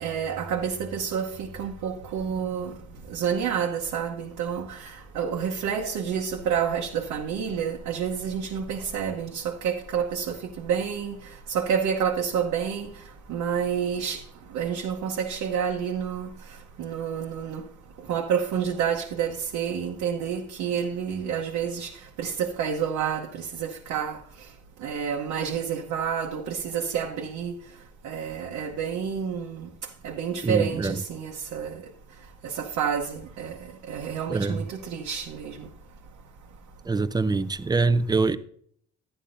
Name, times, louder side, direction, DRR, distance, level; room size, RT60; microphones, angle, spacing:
voice 1, 0.0-2.7 3.1-11.2 11.5-12.9 13.3-14.2 14.5-16.3 16.8-17.6 18.1-21.9 22.2-24.2 24.8-27.5 28.0-29.7 30.0-31.8 32.4-33.5 33.9-35.7, right 7 dB, 80° right, 1.0 m, -29 dB
voice 2, 30.4-31.0 34.3-34.7 36.9-38.4, right 3 dB, 15° right, 0.5 m, -24 dB
11.5 x 9.9 x 2.6 m
cardioid pair, 90°, 30 cm